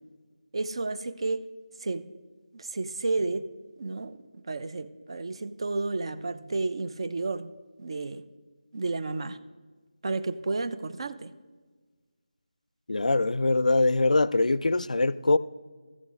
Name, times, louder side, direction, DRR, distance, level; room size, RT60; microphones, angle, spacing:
voice 1, 0.5-1.4 1.8-2.1 2.5-3.5 3.8-7.5 7.8-8.2 8.7-9.4 10.0-11.3, right 3 dB, 45° right, 0.4 m, -31 dB
voice 2, 12.9-15.4, left 2 dB, 80° left, 0.3 m, -23 dB
14.0 x 8.1 x 3.6 m
figure-of-eight pair, 170°, 4 cm